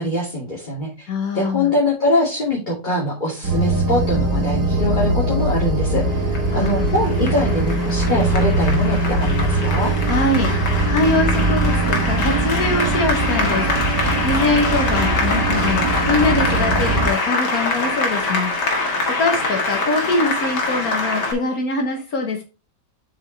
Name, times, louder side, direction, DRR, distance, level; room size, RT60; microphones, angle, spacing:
voice 1, 0.0-1.1 1.3-9.9, left 1 dB, 25° left, -5 dB, 2.6 m, -23 dB
voice 2, 1.1-1.7 6.5-6.9 10.1-22.4, left 3 dB, 60° left, 3 dB, 1.6 m, -23 dB
sound 1, 3.4-17.1, right 2 dB, 65° right, 2.5 m, -21 dB
Applause, 6.0-21.3, left 3 dB, 80° left, 2.4 m, -24 dB
7.3 x 6.3 x 3.2 m, 0.30 s
omnidirectional pair, 1.8 m